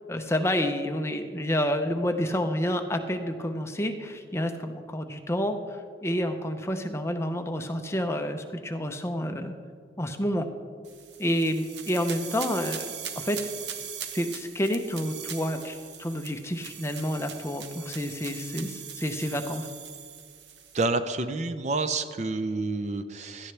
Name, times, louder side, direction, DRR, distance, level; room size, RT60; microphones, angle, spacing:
voice 1, 0.1-5.6 6.0-9.5 10.0-10.5 11.2-12.9 13.2-13.4 14.1-19.7, equal, 15° left, 6 dB, 0.6 m, -29 dB
sound 1, 10.8-20.8, right 8 dB, 65° right, 0.9 m, -40 dB
voice 2, 20.7-23.5, right 3 dB, 35° right, 9 dB, 0.5 m, -29 dB
17.0 x 13.0 x 3.3 m, 2.1 s
head